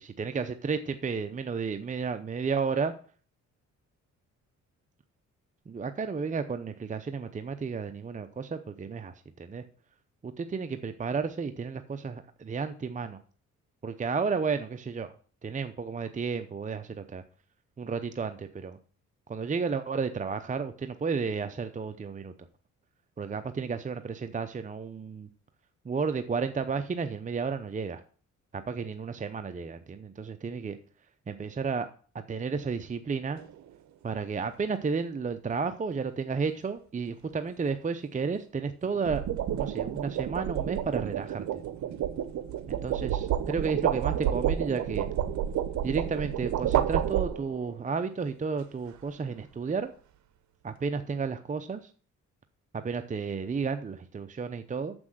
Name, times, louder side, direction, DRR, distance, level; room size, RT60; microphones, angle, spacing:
voice 1, 0.0-2.9 5.7-9.6 10.2-13.2 13.8-15.1 15.4-17.2 17.8-18.8 19.3-22.3 23.2-25.3 25.8-28.0 28.5-30.8 31.3-31.9 32.3-33.4 34.0-39.2 39.5-41.6 42.7-45.1 45.8-49.9 50.6-51.9 52.7-54.9, right 5 dB, 25° right, 9 dB, 0.7 m, -32 dB
sound 1, 33.4-33.7 38.8-47.7, right 10 dB, 70° right, 0.9 m, -30 dB
7.2 x 6.2 x 7.7 m, 0.43 s
cardioid pair, 90°, 30 cm